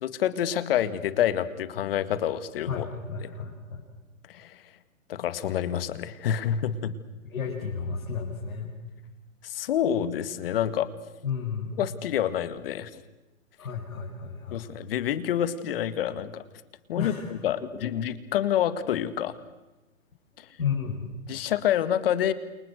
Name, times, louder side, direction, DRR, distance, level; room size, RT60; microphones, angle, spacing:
voice 1, 0.0-2.9 4.3-4.6 5.1-6.9 9.4-10.9 11.8-13.0 14.5-16.4 16.9-19.4 20.4-20.5 21.3-22.3, left 10 dB, 45° left, 13 dB, 2.0 m, -27 dB
voice 2, 2.7-3.8 7.3-8.7 11.2-11.8 13.6-14.7 17.0-17.3 17.8-17.9 20.3-21.2, left 6 dB, 85° left, -4 dB, 7.2 m, -32 dB
30.0 x 29.0 x 6.4 m, 1.1 s
hypercardioid pair, 150°, 41 cm